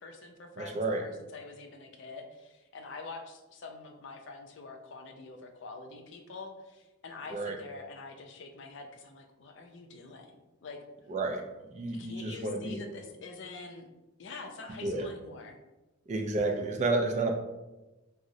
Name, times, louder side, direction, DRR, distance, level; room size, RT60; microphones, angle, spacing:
voice 1, 0.0-10.3 10.6-10.8 11.9-13.9 14.2-15.6, left 3 dB, 60° left, 4 dB, 0.4 m, -46 dB
voice 2, 0.6-1.0 7.3-7.6 11.1-12.8 14.8-15.1 16.1-17.4, right 2 dB, 35° right, 3 dB, 0.3 m, -31 dB
3.8 x 2.0 x 2.6 m, 1.1 s
head